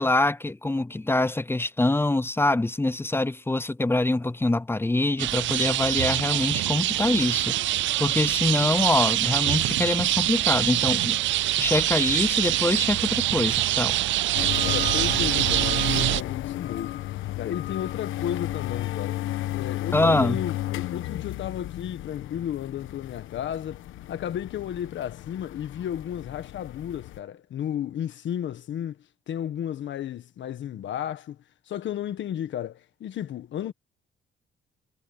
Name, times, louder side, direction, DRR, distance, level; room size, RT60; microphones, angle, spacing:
voice 1, 0.0-11.2 11.6-14.0 19.9-20.4, left 2 dB, 10° left, 0.6 m, -24 dB
sound 1, 5.2-16.2, right 15 dB, 70° right, 0.5 m, -24 dB
sound 2, 14.3-27.2, left 15 dB, 85° left, 1.2 m, -33 dB
voice 2, 14.6-17.0 17.4-19.2 19.5-23.8 24.1-29.0 29.3-31.4 31.7-33.7, left 10 dB, 70° left, 1.5 m, -33 dB
cardioid pair, 90°, 20 cm